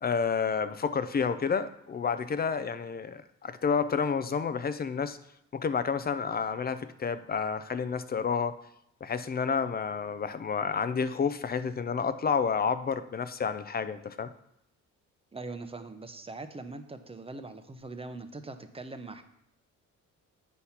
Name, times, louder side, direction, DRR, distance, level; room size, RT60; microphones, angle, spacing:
voice 1, 0.0-5.2 5.5-8.5 9.0-14.3, left 6 dB, 30° left, 12 dB, 0.5 m, -30 dB
voice 2, 15.3-19.2, right 3 dB, 20° right, 8 dB, 0.7 m, -42 dB
8.2 x 4.1 x 5.7 m, 0.77 s
cardioid pair, 90°, 30 cm